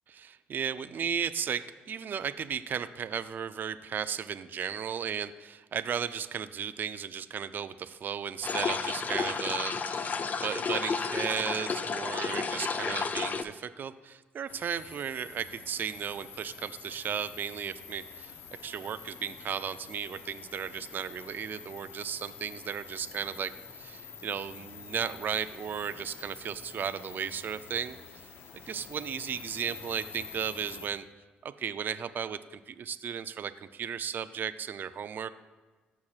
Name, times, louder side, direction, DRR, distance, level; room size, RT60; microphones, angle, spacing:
voice 1, 0.1-18.3 18.6-28.0 28.5-31.1 31.4-35.3, right 7 dB, 55° right, 12 dB, 0.4 m, -35 dB
sound 1, 8.4-13.4, left 5 dB, 45° left, 0.5 m, -32 dB
sound 2, 14.5-30.9, left 6 dB, 75° left, 0.9 m, -47 dB
14.5 x 6.0 x 2.4 m, 1.3 s
supercardioid pair, 70°, 4 cm